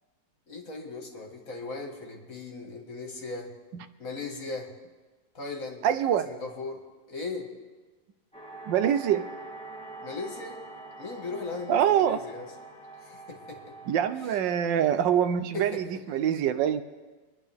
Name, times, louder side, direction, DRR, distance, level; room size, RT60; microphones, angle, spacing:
voice 1, 0.5-3.5 4.0-4.7 5.3-5.8 6.2-6.8 7.1-7.5 10.0-10.6 11.0-12.5 13.0-13.6 14.2-14.4 15.5-15.8, left 3 dB, 50° left, 1 dB, 2.2 m, -37 dB
voice 2, 5.8-6.3 8.7-9.3 11.7-12.2 13.9-16.8, right 9 dB, 85° right, 11 dB, 1.4 m, -25 dB
sound 1, 8.3-14.2, right 3 dB, 5° left, 1.9 m, -44 dB
25.0 x 10.5 x 3.5 m, 1.3 s
omnidirectional pair, 1.9 m